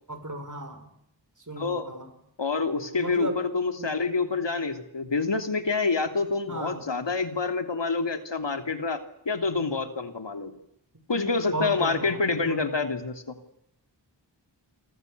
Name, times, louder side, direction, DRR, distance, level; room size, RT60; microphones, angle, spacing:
voice 1, 0.1-0.9 1.4-2.1 2.9-3.4 3.8-4.0 6.5-6.8 11.5-12.6, right 2 dB, 40° right, 8 dB, 6.5 m, -35 dB
voice 2, 1.6-1.9 2.4-10.5 11.1-13.3, left 4 dB, 70° left, 7 dB, 3.2 m, -27 dB
29.5 x 24.0 x 6.9 m, 0.79 s
wide cardioid pair, 45°, 45 cm